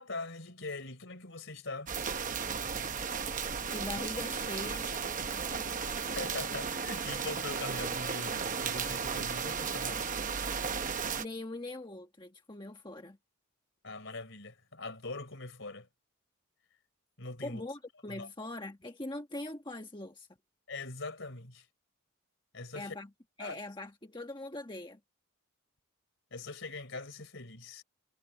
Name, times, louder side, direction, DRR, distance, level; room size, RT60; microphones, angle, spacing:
voice 1, 0.0-1.9 6.2-10.2 13.8-15.9 17.2-17.6 18.1-18.3 20.7-21.7 22.5-23.0 23.4-23.6 26.3-27.8, left 3 dB, 55° left, 3.9 m, -42 dB
sound 1, 1.9-11.3, right 6 dB, 35° right, 1.0 m, -35 dB
voice 2, 3.7-6.0 11.2-13.2 17.4-20.3 22.7-23.1 23.4-25.0, left 2 dB, 20° left, 1.4 m, -42 dB
head